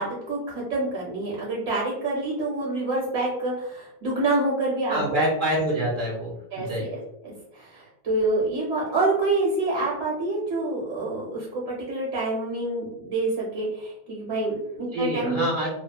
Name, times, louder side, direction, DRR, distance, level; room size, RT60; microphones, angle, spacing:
voice 1, 0.0-5.0 6.5-15.7, right 2 dB, 55° right, -5 dB, 0.9 m, -27 dB
voice 2, 4.9-6.9 14.9-15.7, equal, 90° right, -4 dB, 0.4 m, -26 dB
2.7 x 2.1 x 2.2 m, 0.79 s
omnidirectional pair, 1.5 m